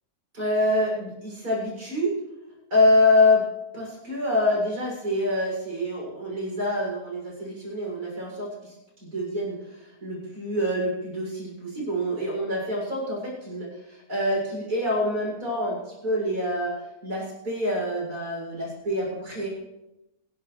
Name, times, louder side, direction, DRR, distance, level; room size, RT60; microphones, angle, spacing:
voice 1, 0.3-2.1 2.7-3.5 3.7-8.7 9.0-19.5, left 1 dB, 90° right, -4 dB, 7.5 m, -26 dB
27.0 x 11.0 x 3.4 m, 0.95 s
omnidirectional pair, 1.5 m